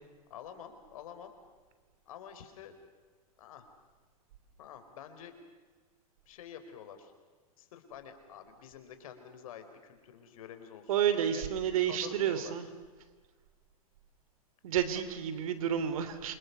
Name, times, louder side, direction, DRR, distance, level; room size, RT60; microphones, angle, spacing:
voice 1, 0.3-1.3 2.1-2.8 3.4-3.7 4.6-5.4 6.3-7.1 7.6-11.4 11.8-12.5 14.9-15.1 15.8-15.9, left 9 dB, 70° left, 8 dB, 4.4 m, -48 dB
voice 2, 10.9-12.7 14.6-16.3, right 9 dB, 70° right, 11 dB, 3.3 m, -30 dB
28.0 x 26.0 x 6.9 m, 1.4 s
hypercardioid pair, 125°, 19 cm